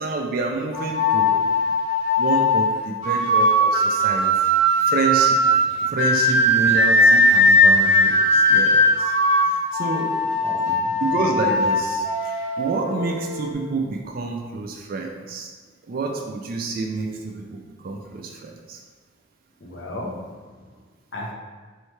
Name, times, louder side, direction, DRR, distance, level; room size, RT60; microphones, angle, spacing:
voice 1, 0.0-1.4 2.2-4.3 4.9-5.4 5.9-9.1 9.4-10.2 11.0-12.0 12.6-15.5 15.9-18.8, right 3 dB, 50° right, 2 dB, 0.4 m, -28 dB
sound 1, 0.7-13.5, left 1 dB, 85° left, 1.0 m, -19 dB
voice 2, 10.3-10.9 19.6-20.4 21.1-21.3, left 1 dB, 65° left, -1 dB, 0.7 m, -35 dB
3.0 x 2.7 x 4.4 m, 1.5 s
head